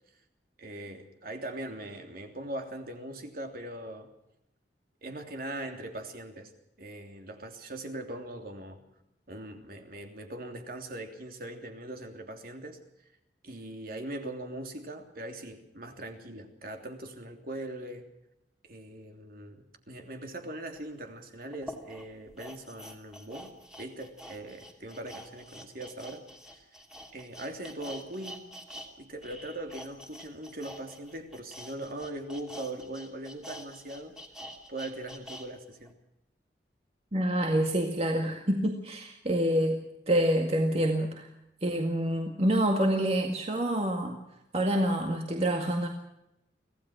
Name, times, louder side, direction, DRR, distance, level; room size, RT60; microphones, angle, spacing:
voice 1, 0.6-4.1 5.0-6.5 6.8-8.8 9.3-12.8 13.4-18.1 18.7-23.5 23.8-26.2 26.5-26.7 27.1-28.5 29.0-34.1 34.7-35.9, right 1 dB, 55° right, 4 dB, 3.2 m, -40 dB
sound 1, 20.8-20.9 21.5-28.9 29.2-35.5 35.8-35.9, equal, 5° right, 2.8 m, -46 dB
voice 2, 37.1-41.3 41.6-44.2 44.5-45.9, right 1 dB, 35° right, 3 dB, 2.0 m, -27 dB
25.0 x 16.5 x 6.2 m, 0.85 s
head